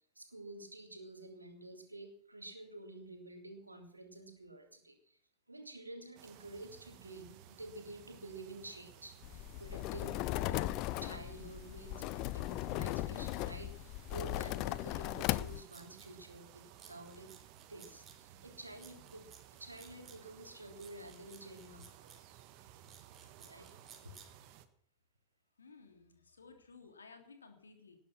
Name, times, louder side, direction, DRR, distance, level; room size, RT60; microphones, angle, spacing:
voice 1, 0.1-5.2 5.5-10.8 11.0-17.3 17.7-22.1 23.4-23.7 24.0-24.1, right 2 dB, 85° right, 4 dB, 3.4 m, -50 dB
sound 1, 6.2-24.7, right 12 dB, 45° right, 1.6 m, -58 dB
sound 2, 9.2-15.6, left 17 dB, 40° left, 0.6 m, -37 dB
sound 3, 15.2-16.1 16.8-18.2 18.8-20.2 20.8-22.2 22.8-24.3, right 6 dB, 20° right, 4.1 m, -57 dB
voice 2, 25.6-28.0, left 4 dB, 75° left, 5 dB, 3.3 m, -57 dB
19.5 x 11.0 x 6.2 m, 0.64 s
figure-of-eight pair, 90°, 0 cm